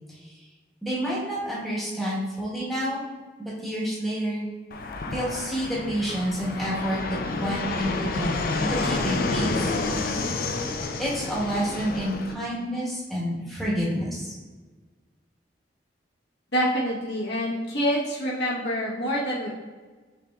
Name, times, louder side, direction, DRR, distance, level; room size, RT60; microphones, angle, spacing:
voice 1, 0.1-0.4 0.8-3.0 3.4-4.5 5.1-9.8 11.0-14.3, equal, ahead, -8 dB, 1.1 m, -29 dB
Fixed-wing aircraft airplane, 4.7-12.3, left 3 dB, 50° left, 0.4 m, -29 dB
voice 2, 16.5-19.5, equal, 70° left, -4 dB, 0.9 m, -26 dB
5.7 x 3.3 x 2.3 m, 1.4 s
head